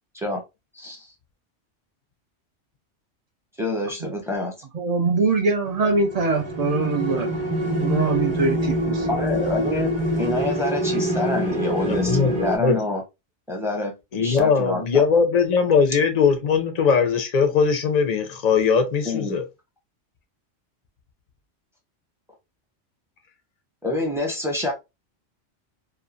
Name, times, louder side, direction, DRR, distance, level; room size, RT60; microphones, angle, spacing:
voice 1, 0.7-1.1 3.6-4.5 9.1-9.9 10.2-13.0 13.5-13.9 14.2-15.0 19.0-19.4 23.8-24.7, left 2 dB, 5° right, 0.6 m, -27 dB
voice 2, 4.7-7.3 7.8-9.1, right 3 dB, 55° right, 0.4 m, -23 dB
sound 1, 5.7-12.6, equal, 25° right, 1.0 m, -25 dB
voice 3, 11.8-12.8 14.1-19.4, left 5 dB, 50° left, 0.5 m, -20 dB
2.9 x 2.2 x 2.4 m
omnidirectional pair, 1.3 m